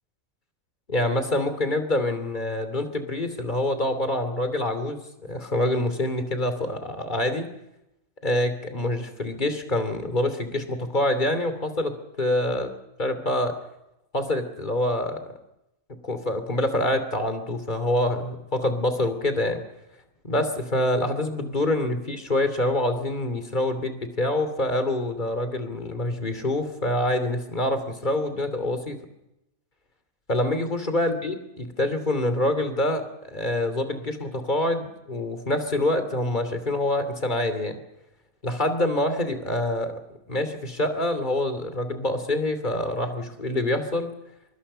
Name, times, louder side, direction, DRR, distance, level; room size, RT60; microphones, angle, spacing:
voice 1, 0.9-7.5 8.2-11.9 12.2-12.7 13.0-13.5 14.1-15.2 16.0-19.6 20.2-29.0 30.3-37.8 38.4-39.9 40.3-44.1, left 1 dB, 35° left, 9 dB, 3.0 m, -26 dB
25.0 x 23.0 x 5.6 m, 0.88 s
omnidirectional pair, 1.4 m